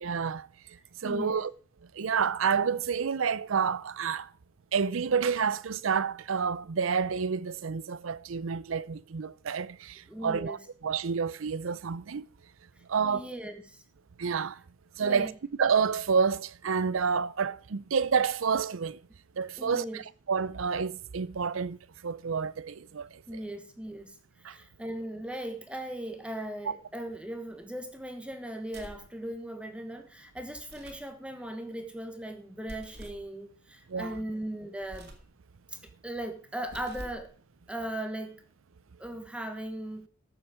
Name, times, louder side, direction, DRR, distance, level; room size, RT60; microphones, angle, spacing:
voice 1, 0.0-0.5 1.0-1.5 1.9-4.3 4.7-12.3 12.9-13.2 14.2-14.6 15.0-15.3 15.6-19.0 19.4-20.0 20.3-21.8 22.0-23.1 24.4-24.6 33.9-34.2, right 6 dB, 80° right, 0.5 m, -29 dB
voice 2, 1.0-1.4 10.1-10.6 13.0-13.8 15.0-15.3 19.6-20.0 23.3-24.2 24.4-35.1 35.7-35.8 36.0-37.3 37.7-38.4 39.0-40.1, right 1 dB, 5° right, 1.2 m, -38 dB
sound 1, 28.7-29.1 30.6-31.1 32.6-33.3 34.8-35.3 36.6-37.3, right 1 dB, 55° right, 2.2 m, -47 dB
13.5 x 7.2 x 5.0 m
head